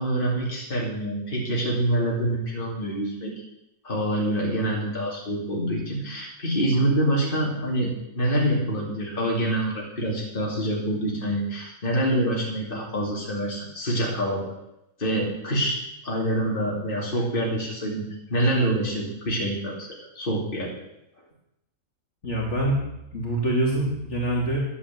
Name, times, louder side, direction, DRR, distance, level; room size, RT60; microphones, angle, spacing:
voice 1, 0.0-3.3 3.8-14.5 15.0-18.0 18.3-19.9 20.1-20.7, right 1 dB, 35° left, -3 dB, 3.1 m, -26 dB
voice 2, 22.2-22.8 23.1-24.6, right 1 dB, 55° left, -3 dB, 3.1 m, -25 dB
10.5 x 10.0 x 7.5 m, 0.85 s
omnidirectional pair, 1.5 m